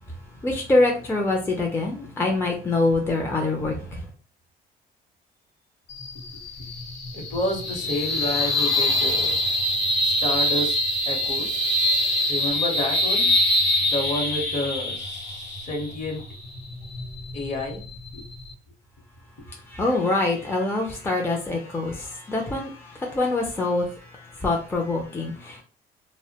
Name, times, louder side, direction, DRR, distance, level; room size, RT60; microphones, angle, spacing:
voice 1, 0.4-4.1 19.7-25.6, left 2 dB, 15° left, 0.4 m, -25 dB
sound 1, 5.9-18.5, left 1 dB, 90° left, 0.9 m, -25 dB
voice 2, 7.1-9.4 10.0-10.8 11.1-11.7 12.3-13.3 13.8-16.3 17.3-17.8 18.1-18.2 19.4-19.5, left 1 dB, 45° left, 0.9 m, -30 dB
2.2 x 2.1 x 2.7 m
cardioid pair, 110°, 17 cm